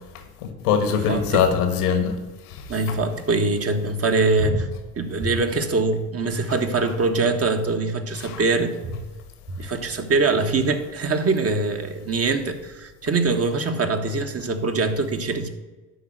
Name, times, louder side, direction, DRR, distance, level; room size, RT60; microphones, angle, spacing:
voice 1, 0.1-2.2 2.5-3.0 6.5-6.6 8.2-8.4, left 7 dB, 80° left, 1.4 m, -23 dB
voice 2, 1.1-1.5 2.7-9.0 9.6-15.5, right 3 dB, 30° right, 1.4 m, -23 dB
11.0 x 3.9 x 7.6 m
hypercardioid pair, 65°, 45 cm